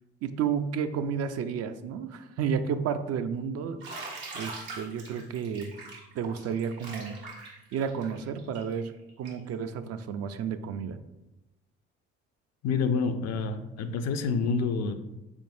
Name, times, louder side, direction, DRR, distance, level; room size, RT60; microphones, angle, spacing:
voice 1, 0.2-3.8 4.3-5.7 6.1-7.1 7.7-8.9 9.2-11.0, right 7 dB, 55° right, 10 dB, 0.4 m, -31 dB
Bathtub (filling or washing), 3.8-9.5, right 3 dB, 85° right, 1.3 m, -42 dB
voice 2, 12.6-14.9, left 5 dB, 60° left, 8 dB, 0.5 m, -28 dB
4.1 x 3.5 x 2.6 m, 0.96 s
hypercardioid pair, 50°, 30 cm